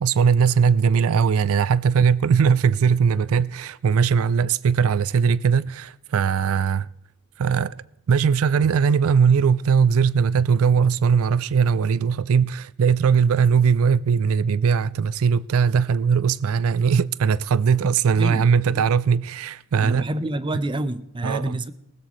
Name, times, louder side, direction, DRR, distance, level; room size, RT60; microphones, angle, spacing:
voice 1, 0.0-6.9 7.4-20.1 21.2-21.6, right 6 dB, 75° right, 0.4 m, -20 dB
voice 2, 18.2-18.8 19.8-21.7, right 1 dB, 20° right, 0.7 m, -28 dB
19.5 x 13.0 x 3.1 m
head